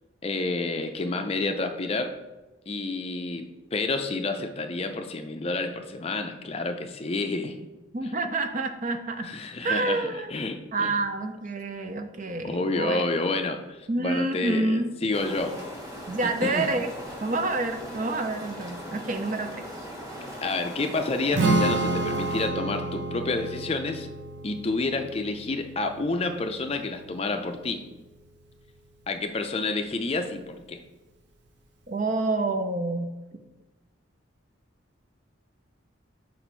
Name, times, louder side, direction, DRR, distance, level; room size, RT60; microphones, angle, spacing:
voice 1, 0.2-2.1 2.7-3.4 3.7-7.6 9.2-10.9 12.4-15.5 16.2-16.7 20.4-24.1 24.4-27.8 29.1-30.8, left 3 dB, 30° left, 6 dB, 0.4 m, -29 dB
voice 2, 7.9-9.3 9.6-10.3 10.7-13.0 13.9-14.9 16.1-16.9 17.2-19.6 31.9-33.1, right 2 dB, 40° right, 7 dB, 0.5 m, -28 dB
sound 1, 15.1-22.5, equal, 15° right, 1.3 m, -39 dB
Strum, 21.3-27.6, right 2 dB, 60° right, 0.8 m, -30 dB
6.2 x 4.2 x 4.5 m, 1.1 s
head